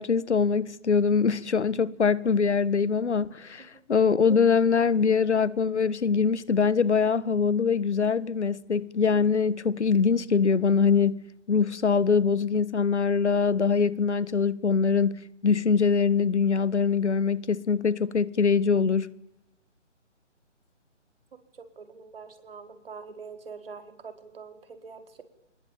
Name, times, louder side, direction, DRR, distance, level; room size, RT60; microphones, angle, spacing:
voice 1, 0.0-11.2 11.5-19.1, left 5 dB, 65° left, 1.7 m, -23 dB
voice 2, 21.3-25.2, right 5 dB, 50° right, 4.8 m, -44 dB
27.0 x 21.0 x 8.9 m
hypercardioid pair, 165°, 37 cm